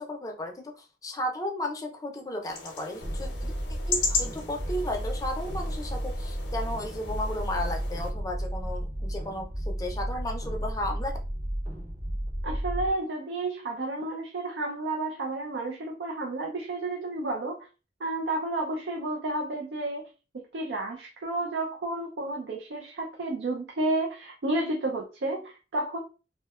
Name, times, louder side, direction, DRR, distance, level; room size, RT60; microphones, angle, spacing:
voice 1, 0.0-3.5 3.9-11.2, left 1 dB, 20° left, 2 dB, 0.4 m, -34 dB
sound 1, 2.4-8.1, left 4 dB, 85° left, 0.6 m, -36 dB
sound 2, 3.0-12.9, equal, 30° right, 0.6 m, -33 dB
voice 2, 12.4-17.6 18.0-20.0 20.3-26.0, right 2 dB, 75° right, 1 dB, 0.4 m, -31 dB
2.7 x 2.1 x 2.2 m, 0.32 s
head